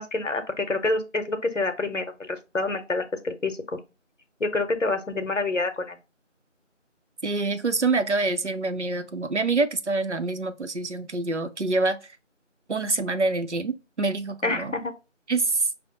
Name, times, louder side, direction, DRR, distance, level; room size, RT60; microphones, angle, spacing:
voice 1, 0.0-3.8 4.4-6.0 14.4-14.9, left 2 dB, 75° left, 0.8 m, -27 dB
voice 2, 7.2-12.2 12.7-14.7 15.3-15.7, right 3 dB, 65° right, 0.6 m, -26 dB
5.6 x 2.0 x 2.9 m
figure-of-eight pair, 180°, 38 cm